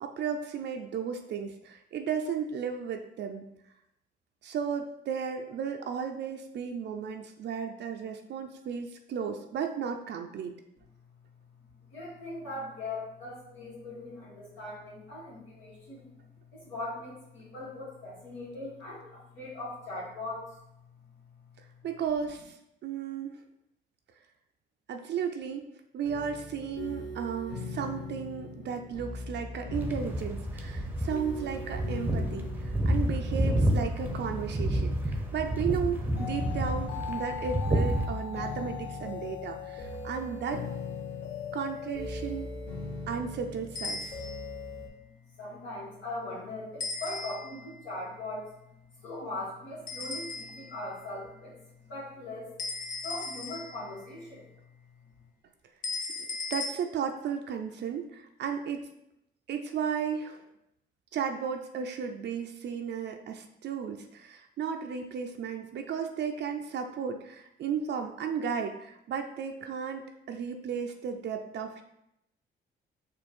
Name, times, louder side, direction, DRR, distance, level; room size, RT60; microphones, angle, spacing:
voice 1, 0.0-3.5 4.4-10.6 21.8-22.6 22.8-23.4 24.9-25.6 25.9-40.6 41.5-42.5 43.1-44.2 56.5-58.8 59.5-60.4 61.1-71.8, right 7 dB, 60° right, 5 dB, 0.5 m, -34 dB
voice 2, 11.9-16.1 16.5-20.4 45.4-48.5 49.0-52.5 53.0-54.4, left 2 dB, 80° left, -11 dB, 1.6 m, -40 dB
sound 1, 26.0-44.9, left 4 dB, 60° left, 1.5 m, -39 dB
sound 2, 29.7-38.1, equal, 10° right, 0.7 m, -30 dB
sound 3, 43.8-44.5 46.8-47.7 49.9-50.8 52.6-54.0 55.8-56.7, left 3 dB, 45° left, 0.6 m, -37 dB
4.4 x 2.5 x 4.4 m, 0.82 s
cardioid pair, 90°, 20 cm